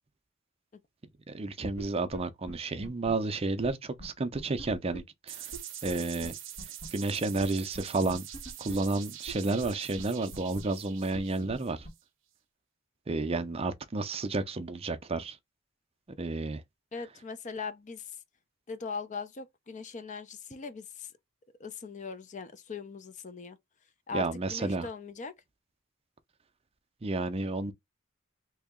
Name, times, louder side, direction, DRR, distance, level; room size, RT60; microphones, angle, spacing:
voice 1, 1.3-5.5 5.8-6.3 6.9-8.3 8.6-11.9 13.1-15.4 16.2-16.6 24.1-24.9 27.0-27.7, right 3 dB, 30° right, 0.5 m, -31 dB
sound 1, 1.8-1.9 2.1-2.2 2.5-2.6 2.8-3.1 3.6-3.7 4.0-4.1 4.3-5.0 5.5-5.6 5.9-6.0 6.2-6.3 6.6-6.9 7.4-7.5 7.7-7.8 8.1-8.7 9.3-9.4 9.6-9.7 10.0-10.1 10.3-10.6 11.1-11.2 11.5-11.6 11.8-11.9, right 2 dB, 65° left, 1.6 m, -42 dB
sound 2, 5.3-12.0, right 11 dB, 65° right, 0.7 m, -44 dB
voice 2, 16.9-18.2 18.7-21.1 21.6-23.6 24.1-25.3, left 4 dB, 40° left, 0.5 m, -40 dB
2.9 x 2.8 x 3.6 m
head